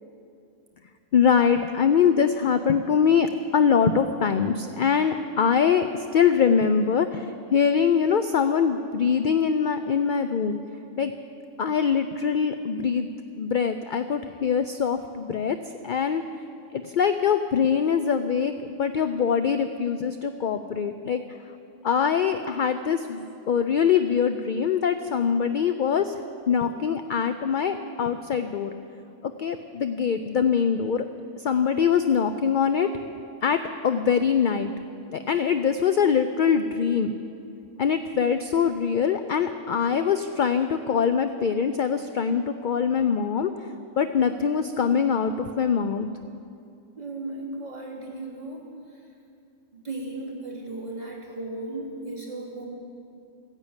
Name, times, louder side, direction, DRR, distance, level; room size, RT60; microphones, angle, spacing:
voice 1, 1.1-10.6 11.0-11.1 11.6-13.1 13.4-15.6 15.8-16.2 16.7-18.5 18.8-21.4 21.8-26.1 26.5-28.7 29.2-31.0 31.4-32.9 33.4-34.7 35.1-37.1 37.8-43.5 44.0-46.1, left 7 dB, 60° left, 9 dB, 0.5 m, -23 dB
voice 2, 47.0-48.6 49.8-52.6, right 2 dB, 30° right, -6 dB, 3.4 m, -35 dB
14.5 x 10.0 x 8.9 m, 2.5 s
omnidirectional pair, 1.3 m